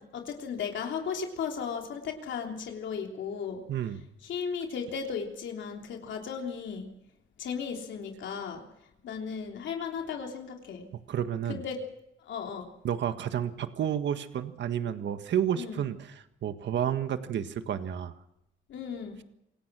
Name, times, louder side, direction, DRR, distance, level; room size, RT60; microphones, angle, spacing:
voice 1, 0.0-3.6 4.2-6.9 7.4-8.6 9.0-10.9 11.5-11.8 12.2-12.7 15.6-15.8 18.7-19.2, left 6 dB, 70° left, 2 dB, 3.4 m, -35 dB
voice 2, 3.7-4.0 11.1-11.6 12.8-18.1, right 9 dB, 65° right, 9 dB, 1.7 m, -31 dB
27.0 x 18.0 x 6.3 m, 0.83 s
cardioid pair, 90°, 20 cm